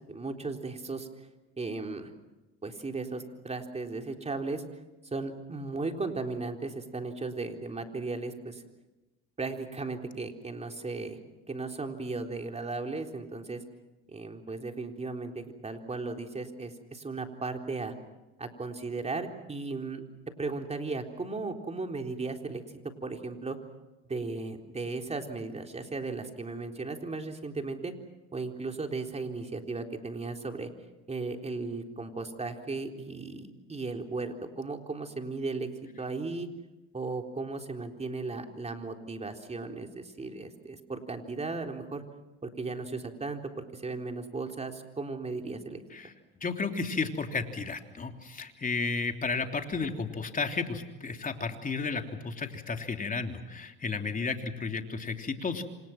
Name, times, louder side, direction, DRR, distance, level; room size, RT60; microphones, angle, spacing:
voice 1, 0.1-1.3 1.6-2.1 2.6-4.6 5.1-8.6 9.4-11.2 11.5-13.6 14.1-17.9 18.4-20.0 20.4-22.6 23.0-23.6 24.1-27.9 28.3-30.7 31.1-35.7 36.0-36.5 36.9-42.0 42.4-45.8, right 3 dB, 20° right, 4 dB, 3.9 m, -36 dB
voice 2, 46.4-55.6, left 4 dB, 25° left, 5 dB, 3.3 m, -33 dB
29.0 x 26.0 x 6.1 m, 1.1 s
supercardioid pair, 90°, 33 cm